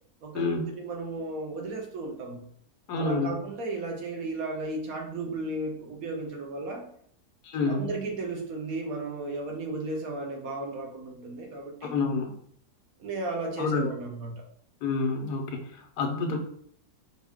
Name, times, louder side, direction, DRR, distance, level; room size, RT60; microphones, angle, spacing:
voice 1, 0.2-2.5 2.9-6.9 7.7-12.0 13.0-14.4, right 2 dB, 65° right, 2 dB, 1.1 m, -34 dB
voice 2, 2.9-3.4 7.4-7.9 11.9-12.3 13.6-13.9 14.8-16.4, left 4 dB, 75° left, 3 dB, 1.2 m, -28 dB
4.4 x 2.3 x 3.5 m, 0.63 s
omnidirectional pair, 1.7 m